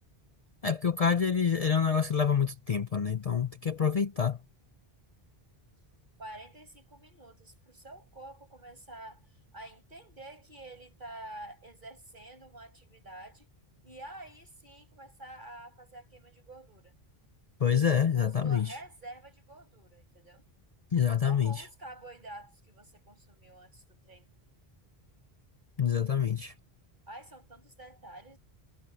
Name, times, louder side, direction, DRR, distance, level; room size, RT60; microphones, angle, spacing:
voice 1, 0.6-4.4 17.6-18.7 20.9-21.7 25.8-26.5, left 7 dB, 45° left, 0.6 m, -27 dB
voice 2, 6.2-13.5 13.8-16.9 18.1-20.4 21.2-24.3 27.1-28.4, right 1 dB, 50° right, 6.8 m, -48 dB
omnidirectional pair, 1.0 m